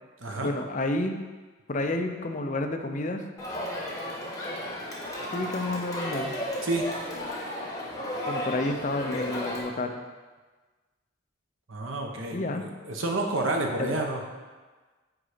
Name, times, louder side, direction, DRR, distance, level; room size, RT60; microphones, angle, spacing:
voice 1, 0.4-1.2 1.7-3.2 5.3-6.3 8.3-10.0 12.3-12.7 13.8-13.9, left 2 dB, 40° left, 5 dB, 0.6 m, -30 dB
Crowd, 3.4-9.6, equal, 20° left, 1.4 m, -34 dB
voice 2, 11.7-14.2, right 2 dB, 85° right, 2 dB, 1.1 m, -29 dB
9.4 x 4.0 x 5.0 m, 1.3 s
head